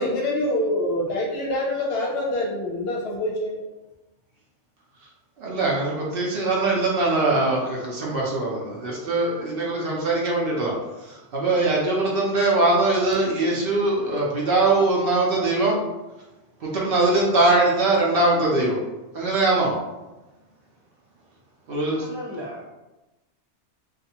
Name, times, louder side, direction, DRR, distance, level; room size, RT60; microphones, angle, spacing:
voice 1, 0.0-3.6, left 1 dB, 65° left, -2 dB, 0.8 m, -25 dB
voice 2, 5.4-10.7 11.0-15.8 16.6-18.8 19.1-19.7 21.7-22.1, right 2 dB, 60° right, -3 dB, 0.7 m, -22 dB
voice 3, 22.0-22.7, equal, 40° left, -7 dB, 0.4 m, -36 dB
2.5 x 2.3 x 2.7 m, 1.1 s
omnidirectional pair, 1.2 m